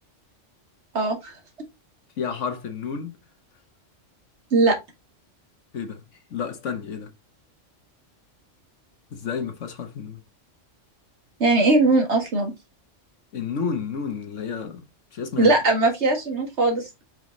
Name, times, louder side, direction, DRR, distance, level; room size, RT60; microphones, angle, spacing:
voice 1, 0.9-1.3 4.5-4.8 11.4-12.5 15.4-17.0, right 2 dB, 65° right, 2.1 m, -20 dB
voice 2, 2.2-3.2 5.7-6.0 6.3-7.1 9.1-10.2 13.3-14.8 15.1-15.5, left 6 dB, 75° left, 1.4 m, -30 dB
5.3 x 4.8 x 3.7 m
omnidirectional pair, 1.3 m